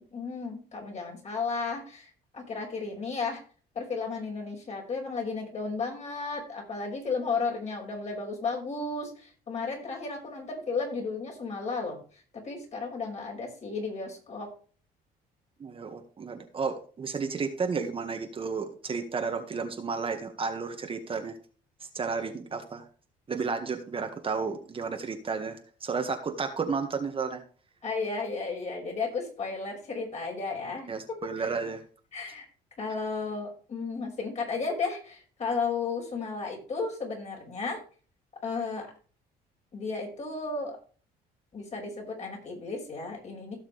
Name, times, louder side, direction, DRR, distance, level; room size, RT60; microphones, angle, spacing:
voice 1, 0.1-3.4 3.7-14.5 27.8-30.9 31.4-31.5 32.1-32.5 32.8-37.8 38.4-38.9 39.7-40.8 41.5-43.6, left 4 dB, 45° left, -1 dB, 5.6 m, -34 dB
voice 2, 15.6-21.4 21.8-22.9 23.3-27.4 30.9-31.8, right 5 dB, 35° right, 5 dB, 1.7 m, -32 dB
16.5 x 6.5 x 3.4 m, 0.41 s
cardioid pair, 110°, 17 cm